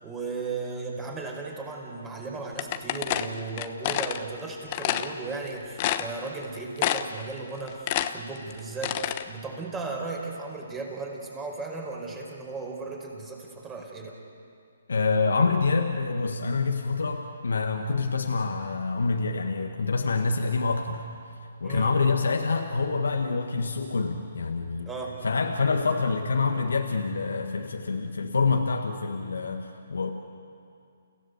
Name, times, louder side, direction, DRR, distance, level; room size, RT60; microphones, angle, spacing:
voice 1, 0.0-14.2 21.6-21.9 24.8-25.2, right 3 dB, 15° right, 0 dB, 5.0 m, -36 dB
sound 1, 2.6-4.2 4.7-5.1 5.5-5.6 5.8-6.4 6.8-7.2 7.5-9.2, left 12 dB, 35° left, 1.1 m, -28 dB
voice 2, 14.9-21.0 21.6-24.9 25.2-30.1, left 4 dB, 80° left, 3 dB, 1.6 m, -26 dB
30.0 x 16.5 x 8.2 m, 2.4 s
hypercardioid pair, 145°, 0 cm